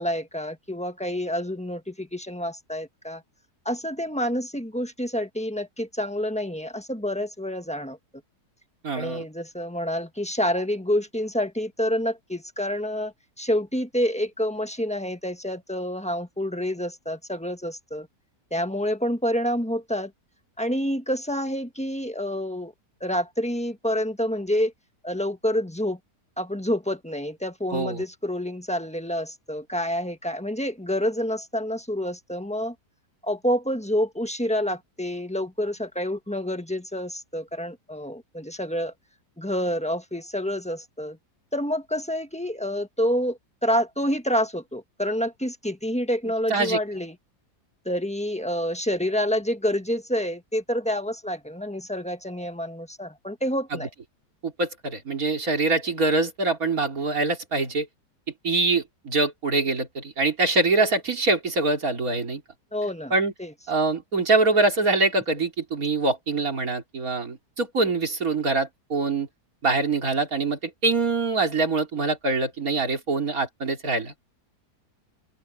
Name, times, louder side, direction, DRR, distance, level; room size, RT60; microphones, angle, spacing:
voice 1, 0.0-3.2 3.6-8.0 8.9-18.1 18.5-20.1 20.6-22.7 23.0-24.7 25.0-26.0 26.4-32.7 33.2-38.9 39.4-41.2 41.5-47.2 47.8-53.9 62.7-63.1 63.4-63.5, equal, 5° left, 1.2 m, -28 dB
voice 2, 8.8-9.2 27.7-28.0 46.5-46.8 53.7-53.8 54.4-57.9 58.4-62.4 63.1-63.3 63.7-69.3 69.6-74.1, right 3 dB, 55° right, 3.6 m, -24 dB
open air
omnidirectional pair, 1.7 m